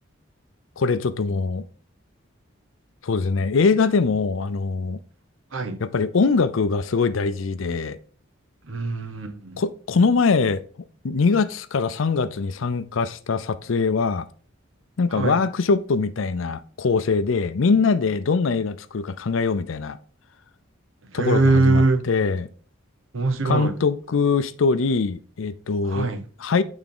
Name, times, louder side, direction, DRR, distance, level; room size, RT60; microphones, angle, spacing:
voice 1, 0.8-1.6 3.0-5.0 5.8-8.0 9.6-10.6 11.0-14.3 15.0-20.0 21.1-22.5 23.4-26.1 26.4-26.6, left 4 dB, 75° left, 0.5 m, -22 dB
voice 2, 8.7-9.6 15.1-15.4 21.1-22.1 23.1-23.7 25.8-26.2, right 3 dB, 75° right, 0.9 m, -22 dB
8.6 x 3.6 x 3.7 m
head